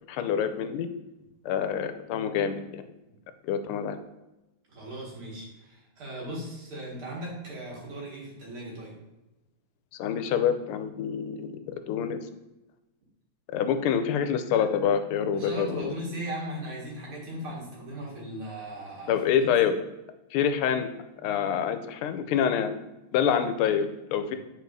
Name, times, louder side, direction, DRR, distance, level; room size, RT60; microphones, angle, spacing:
voice 1, 0.1-0.9 1.4-2.8 3.4-4.0 10.0-12.2 13.5-15.9 19.1-19.7 20.3-20.9 21.2-22.7 23.1-24.4, left 8 dB, 90° left, 9 dB, 1.5 m, -26 dB
voice 2, 4.7-9.0 15.3-19.5, right 1 dB, 80° right, -4 dB, 2.7 m, -38 dB
9.1 x 4.7 x 2.6 m, 0.99 s
omnidirectional pair, 2.3 m